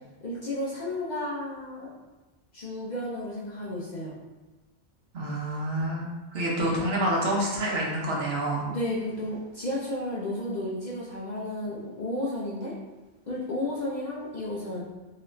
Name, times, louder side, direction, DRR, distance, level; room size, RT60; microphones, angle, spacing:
voice 1, 0.2-1.9 2.5-4.1 8.7-12.7 13.3-14.8, left 1 dB, 55° left, -5 dB, 0.5 m, -32 dB
voice 2, 5.1-6.0 6.3-8.6, right 1 dB, 70° right, -4 dB, 1.0 m, -27 dB
2.9 x 2.4 x 3.1 m, 1.2 s
omnidirectional pair, 1.1 m